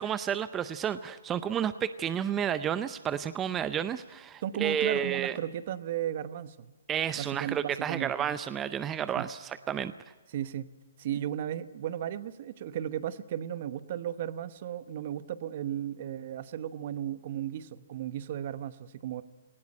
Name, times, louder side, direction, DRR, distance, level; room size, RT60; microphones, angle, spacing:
voice 1, 0.0-5.4 6.9-9.9, right 9 dB, 20° right, 13 dB, 0.6 m, -31 dB
voice 2, 4.4-6.7 7.1-8.4 9.1-9.3 10.3-10.7 11.0-19.2, right 11 dB, 50° right, 13 dB, 1.0 m, -35 dB
19.0 x 17.0 x 9.9 m, 1.2 s
hypercardioid pair, 135°, 0 cm